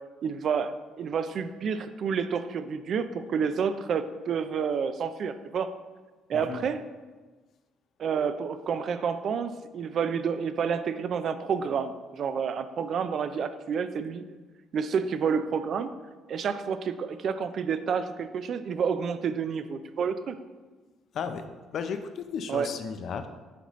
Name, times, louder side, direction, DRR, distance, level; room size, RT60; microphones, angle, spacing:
voice 1, 0.2-5.7 6.3-6.8 8.0-14.2 14.7-15.9 16.3-20.4 22.5-22.7, right 6 dB, 55° right, 11 dB, 0.4 m, -29 dB
voice 2, 6.3-6.7 21.1-21.4 21.7-23.3, left 6 dB, 60° left, 9 dB, 0.5 m, -34 dB
10.0 x 4.0 x 3.1 m, 1.3 s
cardioid pair, 95°, 0 cm